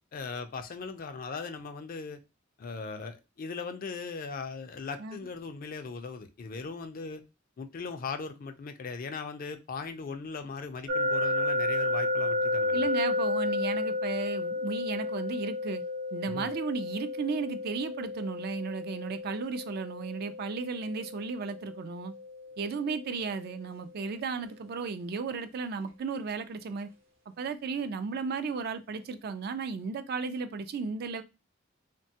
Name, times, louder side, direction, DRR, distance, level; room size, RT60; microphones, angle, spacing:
voice 1, 0.0-2.2 2.6-7.2 7.6-12.9 16.3-16.5, left 4 dB, 45° left, 0.4 m, -39 dB
sound 1, 10.9-23.8, left 2 dB, 80° right, 0.8 m, -32 dB
voice 2, 12.7-15.8 16.1-22.1 22.6-26.9 27.3-31.2, right 5 dB, 55° right, 0.3 m, -34 dB
3.1 x 2.2 x 2.7 m
head